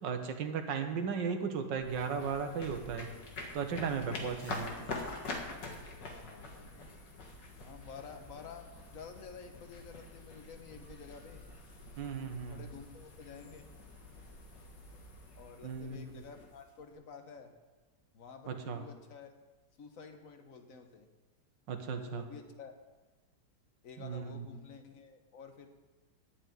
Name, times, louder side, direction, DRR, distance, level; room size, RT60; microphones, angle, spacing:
voice 1, 0.0-3.1 3.5-4.7 12.0-12.7 15.6-16.0 18.5-18.8 21.7-22.3 24.0-24.6, right 6 dB, 85° right, 6 dB, 1.9 m, -36 dB
sound 1, 1.8-16.9, left 2 dB, 75° left, 2.3 m, -46 dB
voice 2, 6.0-6.9 7.6-11.5 12.5-13.7 15.3-17.5 18.1-19.3 19.8-21.1 21.9-22.7 23.8-25.7, left 5 dB, 50° left, 6 dB, 1.5 m, -50 dB
11.0 x 6.9 x 9.1 m, 1.2 s
omnidirectional pair, 1.9 m